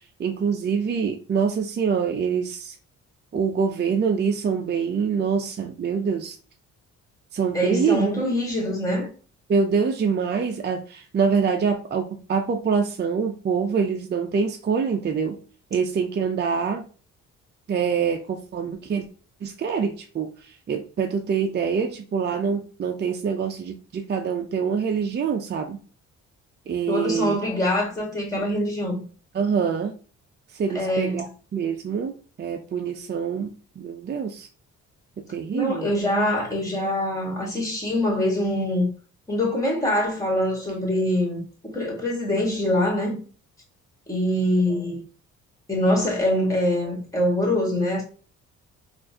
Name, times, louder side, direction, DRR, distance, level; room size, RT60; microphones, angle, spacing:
voice 1, 0.2-2.7 3.3-6.4 7.3-8.1 9.5-15.4 15.7-16.8 17.7-19.0 19.4-25.8 26.7-27.4 29.3-29.9 30.5-33.5 33.8-34.5 35.3-35.9, right 6 dB, 35° right, 0.5 m, -25 dB
voice 2, 7.5-9.1 26.9-29.0 30.7-31.2 35.5-38.9 39.3-43.2 44.1-45.0 45.7-48.0, left 1 dB, 10° left, 1.9 m, -24 dB
4.3 x 2.6 x 2.7 m
cardioid pair, 90°, 30 cm